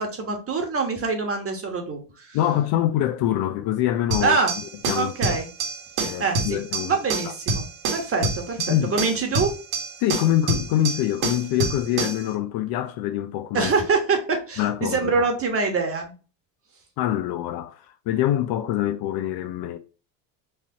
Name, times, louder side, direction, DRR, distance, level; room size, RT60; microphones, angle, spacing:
voice 1, 0.0-2.4 4.2-4.5 5.0-5.5 6.2-9.5 13.5-16.1, right 4 dB, 30° right, 1.2 m, -25 dB
voice 2, 2.3-5.4 6.0-7.0 7.2-7.3 8.7-9.0 10.0-13.7 14.6-15.3 17.0-19.8, left 12 dB, 55° left, 0.5 m, -25 dB
sound 1, 4.1-12.3, right 3 dB, 50° right, 1.5 m, -28 dB
4.7 x 2.7 x 2.8 m
supercardioid pair, 95°, 48 cm